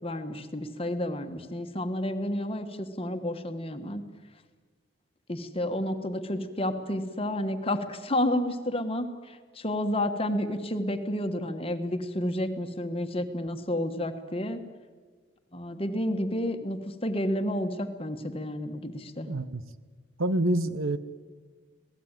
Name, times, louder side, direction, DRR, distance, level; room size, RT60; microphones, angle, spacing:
voice 1, 0.0-4.0 5.3-14.6 15.5-19.3, left 1 dB, 30° left, 7 dB, 1.5 m, -30 dB
voice 2, 19.2-19.6 20.2-21.0, right 1 dB, 90° right, 13 dB, 1.2 m, -27 dB
26.5 x 18.0 x 9.1 m, 1.5 s
head